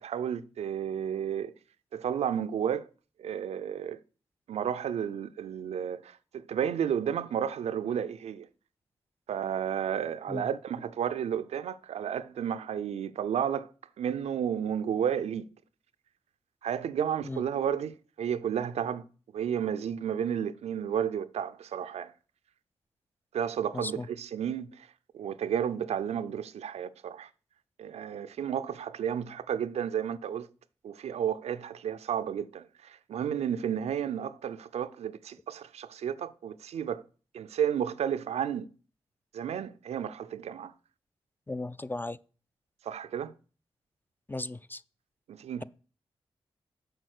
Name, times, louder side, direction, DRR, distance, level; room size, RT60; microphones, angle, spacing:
voice 1, 0.0-1.5 1.9-2.9 3.2-4.0 4.5-8.5 9.3-13.7 14.0-15.5 16.6-19.0 19.3-22.1 23.3-24.9 25.1-27.3 27.8-30.5 30.8-37.0 37.3-38.7 39.3-40.7 42.8-43.3 45.3-45.6, right 8 dB, 80° right, 0.5 m, -32 dB
voice 2, 23.7-24.1 41.5-42.2 44.3-44.8, left 2 dB, 20° left, 0.4 m, -36 dB
7.7 x 4.7 x 6.5 m
supercardioid pair, 40°, 11 cm